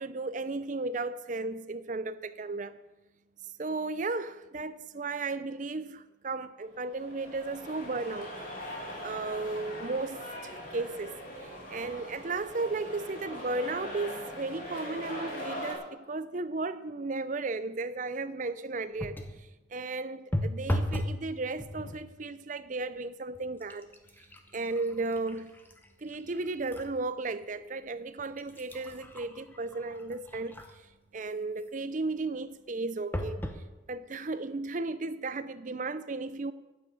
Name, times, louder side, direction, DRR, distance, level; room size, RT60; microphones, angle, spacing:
voice 1, 0.0-2.8 3.6-8.3 8.6-23.9 24.5-25.5 26.0-30.8 31.1-33.5 33.9-36.5, right 3 dB, 40° right, 0.5 m, -35 dB
sound 1, 6.8-15.7, equal, 40° left, 2.7 m, -41 dB
sound 2, 19.0-19.4 20.3-21.2 21.6-22.1 22.8-23.0 23.3-26.9 27.4-27.5 28.2-30.9 33.1-33.6 34.3-34.4 34.7-34.8, equal, 10° left, 0.9 m, -36 dB
10.0 x 9.3 x 8.0 m
head